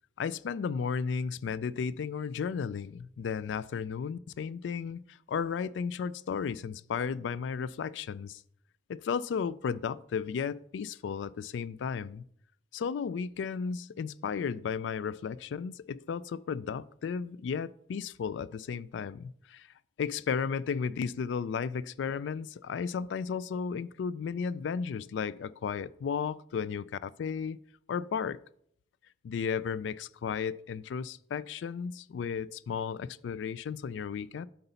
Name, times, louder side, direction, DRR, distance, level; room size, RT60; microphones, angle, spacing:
voice 1, 0.2-8.4 8.9-12.2 12.7-27.6 27.9-28.4 29.2-34.5, left 6 dB, 90° left, 0.3 m, -34 dB
7.9 x 4.0 x 5.5 m
head